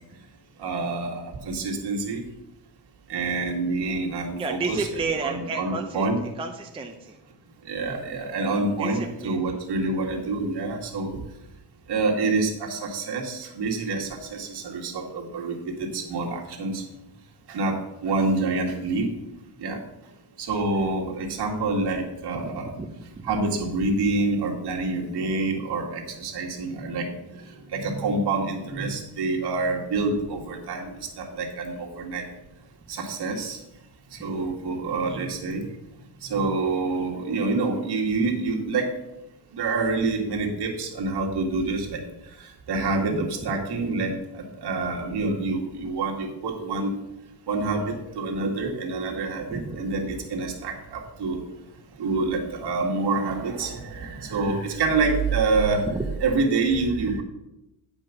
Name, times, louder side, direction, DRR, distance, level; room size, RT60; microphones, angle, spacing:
voice 1, 0.6-2.2 3.1-4.9 5.2-6.2 7.7-11.2 11.9-16.8 17.5-19.1 19.6-19.8 20.4-22.7 23.2-27.1 27.7-30.9 31.2-32.2 32.9-33.6 34.1-35.7 36.2-38.9 39.5-42.0 42.4-46.9 47.5-51.4 52.0-55.9 56.2-57.2, right 3 dB, 65° right, -1 dB, 2.1 m, -27 dB
voice 2, 4.3-7.2 8.8-9.4 19.0-19.1 22.5-22.9 23.2-23.3 35.1-35.3 43.1-43.2 49.5-49.8 55.9-56.1, right 3 dB, 15° right, 3 dB, 0.5 m, -32 dB
9.5 x 5.4 x 5.8 m, 0.92 s
cardioid pair, 165°, 43 cm